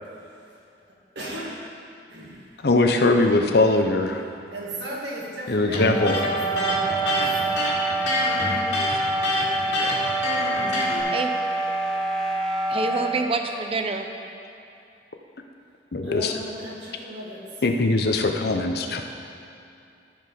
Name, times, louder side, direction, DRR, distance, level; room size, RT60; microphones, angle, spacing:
voice 1, 1.2-1.6 2.1-2.4 4.5-7.6 16.0-17.4, right 1 dB, 80° right, -5 dB, 1.9 m, -36 dB
voice 2, 2.6-4.2 5.5-6.2 9.8-10.1 15.9-16.3 17.6-19.0, left 2 dB, 60° left, 5 dB, 0.7 m, -21 dB
Electric guitar, 5.7-11.0, left 2 dB, 90° left, 2.2 m, -26 dB
sound 1, 5.8-13.3, right 2 dB, 5° left, 0.8 m, -26 dB
voice 3, 12.7-14.1, right 3 dB, 30° right, 5 dB, 0.6 m, -26 dB
13.5 x 4.7 x 5.1 m, 2.6 s
head